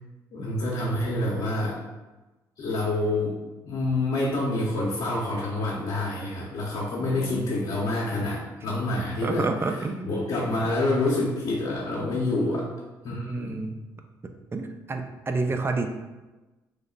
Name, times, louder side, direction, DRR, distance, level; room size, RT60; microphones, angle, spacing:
voice 1, 0.3-1.8 2.6-3.4 3.6-9.5 10.0-12.6 13.0-13.7, left 2 dB, 55° left, -6 dB, 0.7 m, -27 dB
voice 2, 7.0-7.5 9.2-10.1 12.3-12.7 13.2-13.7 14.5-15.9, right 3 dB, 30° right, 6 dB, 0.4 m, -30 dB
3.2 x 2.0 x 3.8 m, 1.1 s
supercardioid pair, 60°, 9 cm